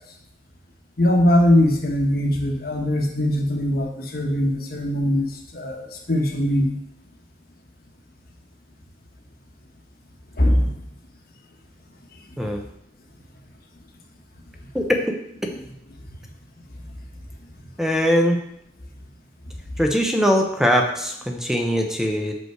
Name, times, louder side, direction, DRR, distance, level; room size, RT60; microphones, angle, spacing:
voice 1, 1.0-5.3 5.5-6.7 10.4-10.6, left 1 dB, 55° left, 2 dB, 1.1 m, -20 dB
voice 2, 14.7-15.2 17.8-18.4 19.8-22.3, equal, 5° right, 3 dB, 0.7 m, -21 dB
6.1 x 5.4 x 4.6 m, 0.74 s
head